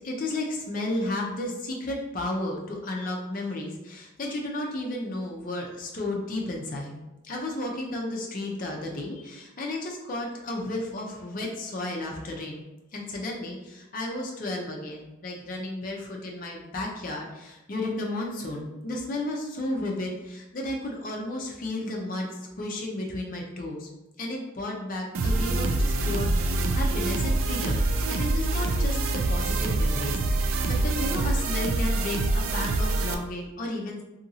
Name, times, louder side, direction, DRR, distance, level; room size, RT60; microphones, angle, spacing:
voice 1, 0.0-7.0 7.2-12.6 12.9-22.3 22.6-23.9 24.2-34.0, left 1 dB, 40° left, 0 dB, 0.5 m, -33 dB
sound 1, 25.1-33.1, right 2 dB, 75° right, 0.3 m, -25 dB
2.7 x 2.6 x 2.7 m, 1.0 s
head